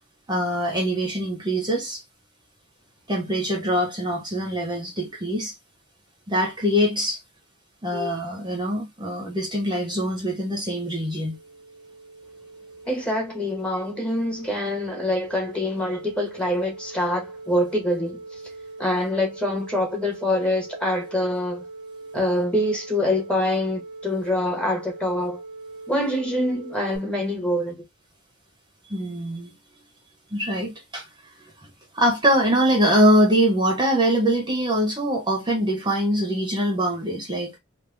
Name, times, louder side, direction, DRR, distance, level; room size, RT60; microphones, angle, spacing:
voice 1, 0.3-2.0 3.1-5.5 6.3-7.2 7.8-11.4 28.9-29.5 30.3-31.0 31.6-31.7 31.9-37.6, equal, 20° right, 0.9 m, -23 dB
sound 1, 9.9-27.0, right 3 dB, 45° right, 0.9 m, -41 dB
voice 2, 12.9-18.2 18.8-21.6 22.1-25.4 25.9-27.8, left 1 dB, 5° left, 1.0 m, -25 dB
3.6 x 2.2 x 3.1 m
head